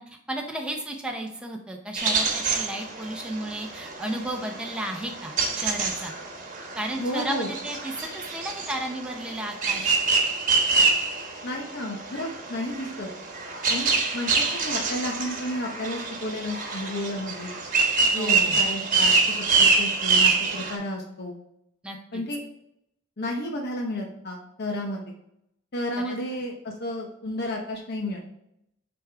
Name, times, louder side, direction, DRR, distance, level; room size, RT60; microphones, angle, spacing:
voice 1, 0.0-6.1 6.8-10.0 18.2-18.6 21.8-22.2 26.1-26.2, right 1 dB, 5° right, 1 dB, 0.6 m, -33 dB
sound 1, 2.0-20.7, right 4 dB, 40° right, 1.2 m, -26 dB
voice 2, 7.0-7.5 11.4-13.1 13.7-17.5 18.1-19.1 19.6-21.4 22.1-22.4 23.2-25.0 25.7-28.2, left 1 dB, 50° left, 1 dB, 0.8 m, -32 dB
8.3 x 3.5 x 4.5 m, 0.78 s
head